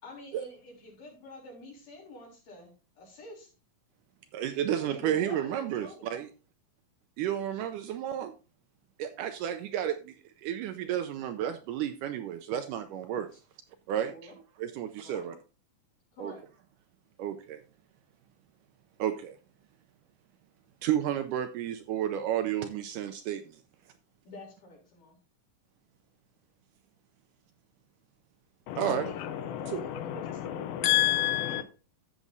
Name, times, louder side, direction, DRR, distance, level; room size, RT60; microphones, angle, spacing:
voice 1, 0.0-3.5 4.9-6.1 14.0-14.3 15.0-15.4 16.1-16.5 24.2-25.2 28.9-29.8 30.2-30.4 31.4-31.6, left 2 dB, 65° left, 4.8 m, -48 dB
voice 2, 4.3-6.3 7.2-8.3 9.0-13.3 13.9-15.4 16.2-16.4 17.2-17.6 19.0-19.4 20.8-23.6 28.8-29.1 29.7-29.8, right 10 dB, 80° right, 1.9 m, -32 dB
voice 3, 28.7-31.6, left 14 dB, 90° left, 2.6 m, -29 dB
13.5 x 7.3 x 2.6 m
omnidirectional pair, 4.1 m